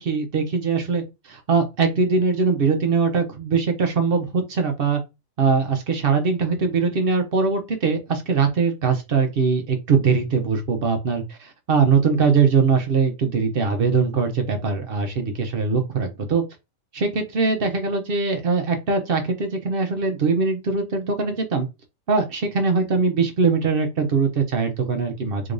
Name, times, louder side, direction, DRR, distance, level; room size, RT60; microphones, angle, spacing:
voice 1, 0.0-5.0 5.4-16.4 16.9-21.7 22.1-25.5, right 5 dB, 50° right, 5 dB, 0.8 m, -21 dB
3.8 x 3.3 x 2.5 m, 0.24 s
omnidirectional pair, 1.5 m